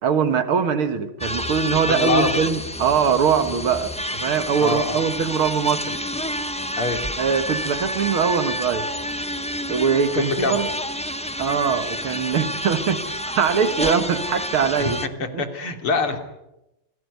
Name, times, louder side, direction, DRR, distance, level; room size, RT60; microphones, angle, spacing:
voice 1, 0.0-6.0 7.2-8.9 9.7-10.7 11.4-15.0 15.3-15.4, right 6 dB, 75° right, 9 dB, 2.6 m, -22 dB
sound 1, 1.2-15.1, equal, 10° left, 0.4 m, -29 dB
voice 2, 1.9-2.4 4.6-5.1 6.8-7.0 10.1-10.6 14.8-14.9 15.4-16.2, left 3 dB, 80° left, 6 dB, 3.8 m, -24 dB
28.0 x 18.5 x 9.6 m, 0.93 s
omnidirectional pair, 2.4 m